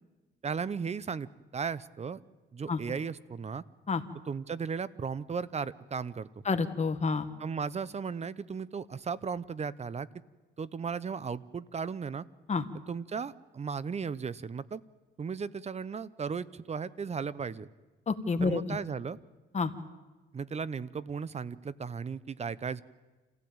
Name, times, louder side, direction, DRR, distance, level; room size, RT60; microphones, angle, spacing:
voice 1, 0.4-2.2 2.5-3.6 4.3-6.3 7.4-10.1 10.6-12.2 12.9-14.8 15.2-17.7 18.4-19.2 20.3-22.8, right 6 dB, 35° right, 18 dB, 0.8 m, -36 dB
voice 2, 6.5-7.3 12.5-12.6 18.1-18.8 19.5-19.7, left 4 dB, 35° left, 8 dB, 1.7 m, -29 dB
27.0 x 15.5 x 8.8 m, 1.2 s
cardioid pair, 90°, 20 cm